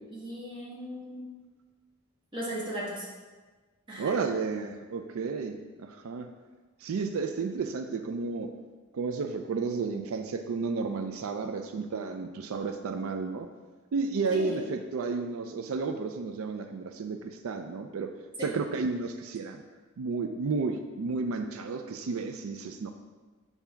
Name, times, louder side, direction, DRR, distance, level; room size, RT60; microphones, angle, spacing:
voice 1, 0.1-1.3 2.3-3.1 3.9-4.2 14.3-14.6 18.4-18.5, equal, 20° right, -5 dB, 1.3 m, -37 dB
voice 2, 4.0-6.3 6.8-8.5 8.9-13.5 13.9-18.1 18.4-19.6 20.0-22.9, right 4 dB, 85° right, 6 dB, 0.4 m, -32 dB
6.9 x 2.8 x 5.6 m, 1.3 s
head